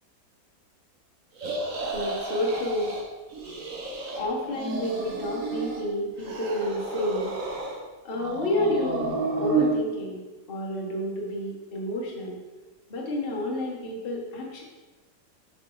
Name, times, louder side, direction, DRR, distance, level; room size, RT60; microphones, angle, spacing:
sound 1, 1.4-3.0 3.3-4.2 4.5-5.8 6.2-7.8 8.1-9.7, right 3 dB, 50° right, 1.4 m, -31 dB
voice 1, 1.9-3.0 4.1-7.3 8.0-10.2 10.5-12.4 12.9-14.6, left 1 dB, 30° left, -2 dB, 1.5 m, -30 dB
8.2 x 4.9 x 4.8 m, 1.2 s
omnidirectional pair, 2.1 m